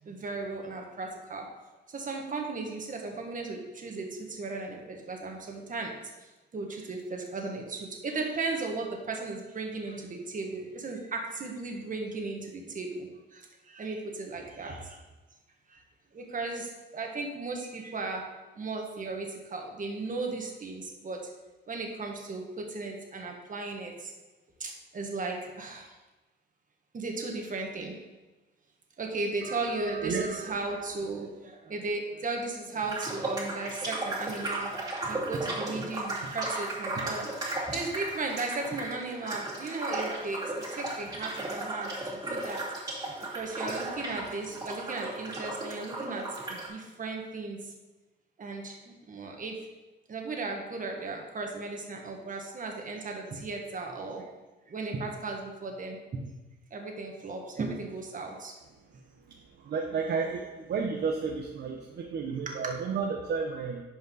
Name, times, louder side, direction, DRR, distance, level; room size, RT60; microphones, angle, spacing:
voice 1, 0.0-1.5 1.9-15.0 15.7-15.8 16.1-18.3 18.6-21.3 21.7-24.1 24.6-26.0 26.9-28.0 29.0-34.7 35.1-42.6 43.3-47.7 48.4-49.6 50.1-54.3 54.7-56.2 56.7-58.5 58.9-59.0 62.5-62.7, right 3 dB, 40° right, 1 dB, 1.7 m, -36 dB
voice 2, 29.4-30.6 59.7-60.4 60.7-63.8, right 5 dB, 55° right, 2 dB, 0.9 m, -32 dB
sound 1, 32.8-46.7, right 2 dB, 20° right, 2.6 m, -35 dB
11.0 x 5.2 x 4.0 m, 1.1 s
cardioid pair, 90°, 20 cm